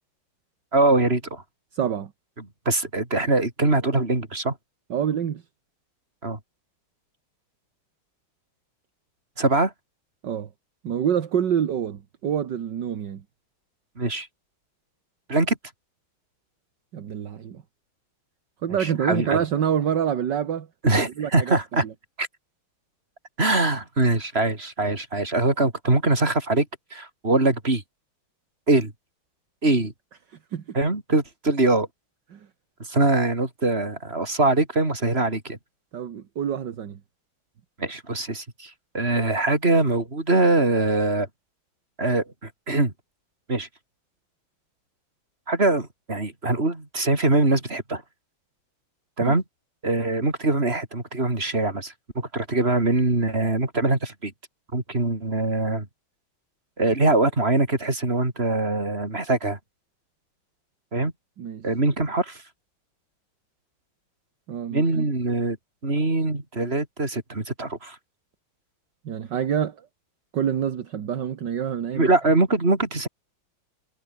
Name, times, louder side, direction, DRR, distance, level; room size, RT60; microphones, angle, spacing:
voice 1, 0.7-1.4 2.7-4.6 6.2-6.4 9.4-9.7 14.0-14.3 15.3-15.6 18.8-19.4 20.8-21.8 22.2-22.3 23.4-26.7 26.9-27.8 28.7-28.9 29.6-29.9 30.7-31.9 32.9-35.6 37.8-41.3 42.0-42.9 43.5-43.7 45.5-48.0 49.2-49.4 49.8-54.3 54.7-55.9 56.8-59.6 60.9-61.1 61.6-62.4 64.7-65.6 65.8-68.0 71.9-73.1, right 2 dB, 30° right, 4.6 m, -23 dB
voice 2, 1.7-2.1 4.9-5.4 10.2-10.5 10.8-13.2 16.9-17.6 18.6-20.7 21.2-21.5 21.8-21.9 30.3-30.8 32.3-32.5 35.9-37.0 49.2-49.3 61.4-61.7 64.5-65.1 69.0-69.9 70.3-72.1, right 9 dB, 60° right, 2.0 m, -27 dB
omnidirectional pair, 2.2 m